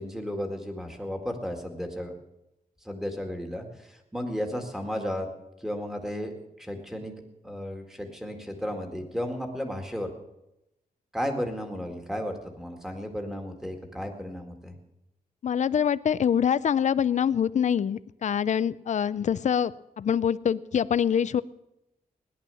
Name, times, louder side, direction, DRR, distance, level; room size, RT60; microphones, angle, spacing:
voice 1, 0.0-2.1 2.8-5.3 5.6-7.2 7.4-10.1 11.1-14.7, equal, 5° right, 3 dB, 2.0 m, -34 dB
voice 2, 15.4-21.4, left 8 dB, 55° left, 17 dB, 0.5 m, -25 dB
17.5 x 11.0 x 6.9 m, 0.90 s
wide cardioid pair, 155°, 15 cm